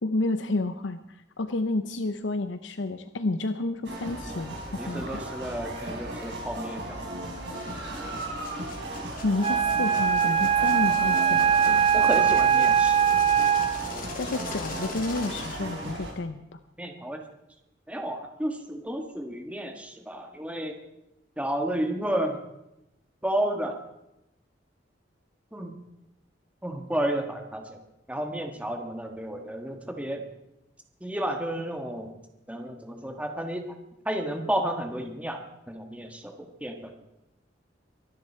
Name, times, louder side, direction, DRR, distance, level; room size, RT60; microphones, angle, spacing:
voice 1, 0.0-5.2 9.2-11.9 14.2-16.6, left 2 dB, 80° left, 10 dB, 0.7 m, -30 dB
sound 1, 3.8-16.1, right 1 dB, 65° right, 4.3 m, -36 dB
voice 2, 4.8-7.1 9.5-9.6 11.9-13.0 14.6-14.7 16.8-17.2 17.9-20.8 21.4-22.4 23.2-23.8 25.5-25.7 26.6-27.8 28.1-30.2 31.0-32.1 32.5-33.7 34.0-35.4 35.7-36.9, right 1 dB, 5° right, 4 dB, 1.4 m, -32 dB
sound 2, 7.4-16.2, left 4 dB, 50° left, 2.8 m, -43 dB
Wind instrument woodwind instrument, 9.4-14.0, right 8 dB, 30° right, 0.7 m, -22 dB
23.5 x 11.0 x 4.5 m, 0.87 s
head